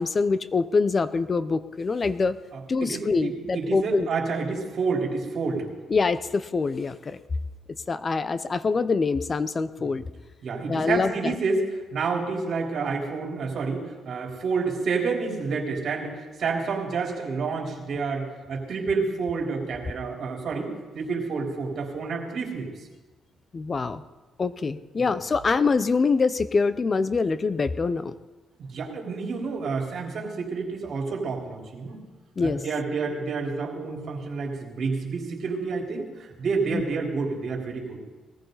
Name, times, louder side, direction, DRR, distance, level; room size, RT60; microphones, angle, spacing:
voice 1, 0.0-2.4 2.7-4.1 5.9-7.2 7.9-10.0 10.7-11.3 23.5-24.0 24.4-28.1 32.4-32.6 36.7-36.8, left 4 dB, 35° left, 14 dB, 0.7 m, -25 dB
voice 2, 2.5-5.7 9.8-9.9 10.4-11.7 11.9-22.7 25.0-25.2 28.7-32.0 32.4-38.0, right 4 dB, 60° right, 0 dB, 3.8 m, -29 dB
20.5 x 14.5 x 4.0 m, 1.2 s
cardioid pair, 90°, 0 cm